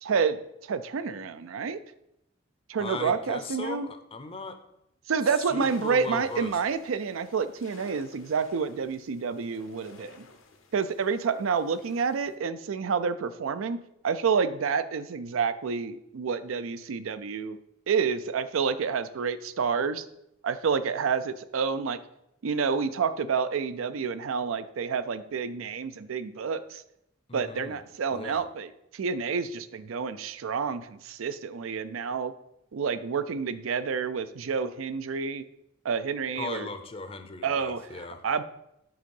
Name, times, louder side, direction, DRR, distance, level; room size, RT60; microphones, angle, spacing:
voice 1, 0.0-0.4 0.7-1.8 2.7-3.9 5.1-10.3 10.7-13.8 14.0-17.6 17.9-20.0 20.4-22.0 22.4-26.8 27.3-32.3 32.7-35.4 35.8-36.7 37.4-38.4, right 5 dB, 80° right, 13 dB, 0.4 m, -29 dB
voice 2, 2.8-4.6 5.5-6.5 27.3-27.8 28.1-28.4 36.4-38.2, left 3 dB, 30° left, 8 dB, 0.6 m, -37 dB
sound 1, 5.6-12.4, left 3 dB, 75° left, 1.0 m, -52 dB
7.8 x 3.8 x 5.3 m, 0.81 s
head